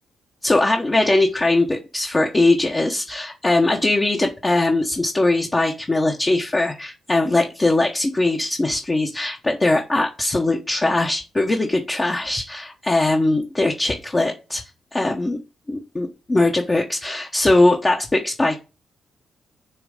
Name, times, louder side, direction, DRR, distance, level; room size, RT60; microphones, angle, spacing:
voice 1, 0.4-14.6 14.9-15.4 15.7-18.6, left 2 dB, 30° left, 1 dB, 1.0 m, -20 dB
7.6 x 3.1 x 5.0 m, 0.30 s
hypercardioid pair, 45°, 0 cm